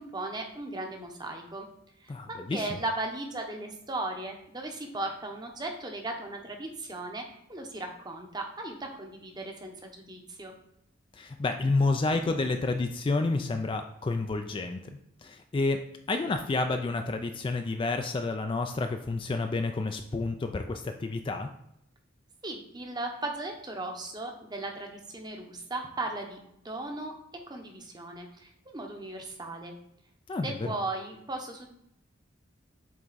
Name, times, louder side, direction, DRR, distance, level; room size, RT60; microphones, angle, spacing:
voice 1, 0.0-1.7 2.0-10.5 22.4-26.4 26.6-27.1 27.5-29.7 30.4-31.7, right 2 dB, 20° right, 3 dB, 0.8 m, -37 dB
voice 2, 2.1-2.8 11.2-14.8 15.2-15.8 16.1-21.5 30.3-30.5, left 3 dB, 25° left, 6 dB, 0.3 m, -29 dB
7.6 x 3.5 x 4.0 m, 0.76 s
head